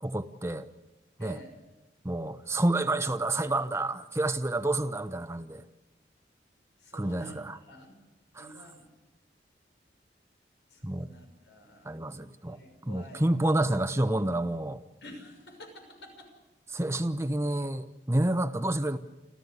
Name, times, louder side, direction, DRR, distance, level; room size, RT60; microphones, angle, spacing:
voice 1, 0.0-0.7 1.2-1.4 2.0-5.6 6.9-7.6 8.3-8.5 10.8-11.1 11.8-12.6 12.8-14.8 16.7-19.0, right 1 dB, 15° right, 0.9 m, -29 dB
voice 2, 1.2-1.5 6.8-7.4 7.7-8.0 8.3-8.9 10.7-12.1 12.5-13.2 15.0-16.3, equal, 85° left, 6.2 m, -49 dB
29.0 x 14.0 x 8.2 m
head